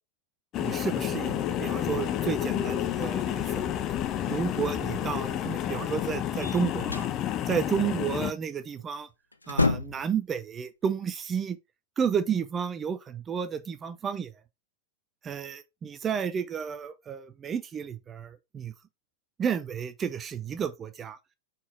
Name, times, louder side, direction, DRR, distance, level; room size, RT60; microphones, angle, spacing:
sound 1, 0.5-8.3, left 11 dB, 35° left, 0.7 m, -30 dB
voice 1, 0.6-3.6 4.3-7.1 7.5-9.1 9.5-11.6 12.0-14.3 15.2-18.7 19.4-21.2, right 7 dB, 25° right, 0.7 m, -31 dB
sound 2, 6.4-7.2 8.8-9.0 9.3-10.2, left 3 dB, 80° left, 0.6 m, -28 dB
5.7 x 4.1 x 4.7 m
figure-of-eight pair, 90°, 0 cm